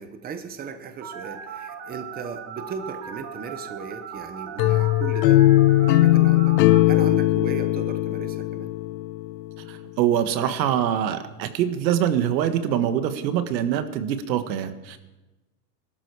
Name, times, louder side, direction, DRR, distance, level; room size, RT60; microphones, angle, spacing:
voice 1, 0.0-5.4 5.8-6.6 6.9-8.7, right 5 dB, 20° right, 9 dB, 1.0 m, -36 dB
Telephone, 1.0-6.8, right 7 dB, 35° right, 3.2 m, -38 dB
sound 1, 4.6-9.5, left 16 dB, 80° left, 0.8 m, -19 dB
voice 2, 9.6-15.0, right 10 dB, 90° right, 9 dB, 1.7 m, -24 dB
20.5 x 12.5 x 4.8 m, 1.1 s
supercardioid pair, 150°, 50 cm